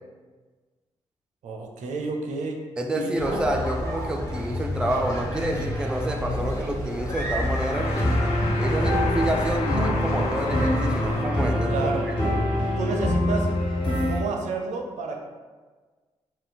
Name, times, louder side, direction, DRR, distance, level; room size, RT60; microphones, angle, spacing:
voice 1, 1.4-2.6 2.9-3.4 11.6-12.1 12.8-13.5 14.1-15.2, right 3 dB, 85° right, 2 dB, 0.4 m, -30 dB
voice 2, 2.8-8.2 8.6-12.5, right 1 dB, 5° right, 2 dB, 0.3 m, -28 dB
sound 1, 3.2-11.2, equal, 25° left, 0.9 m, -31 dB
sound 2, 6.9-12.0, left 3 dB, 65° left, 0.4 m, -35 dB
sound 3, 7.7-14.2, left 1 dB, 45° left, 1.1 m, -25 dB
2.5 x 2.2 x 3.6 m, 1.4 s
supercardioid pair, 50°, 12 cm